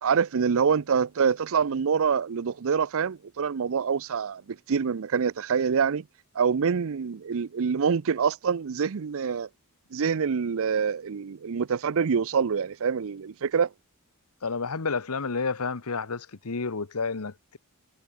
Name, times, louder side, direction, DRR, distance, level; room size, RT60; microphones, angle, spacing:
voice 1, 0.0-6.1 6.3-9.5 9.9-13.7, right 6 dB, 65° right, 0.5 m, -26 dB
voice 2, 14.4-17.6, left 4 dB, 75° left, 1.1 m, -30 dB
head